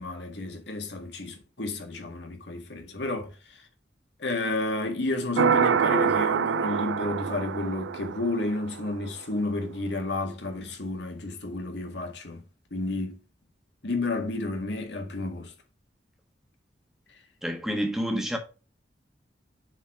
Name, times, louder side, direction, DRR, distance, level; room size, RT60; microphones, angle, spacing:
voice 1, 0.0-3.7 4.2-12.4 12.7-13.2 13.8-15.5, left 2 dB, 70° left, 2.0 m, -31 dB
sound 1, 5.4-8.8, right 7 dB, 80° right, 0.4 m, -25 dB
voice 2, 17.4-18.4, equal, ahead, 1.4 m, -28 dB
7.2 x 4.2 x 4.7 m
head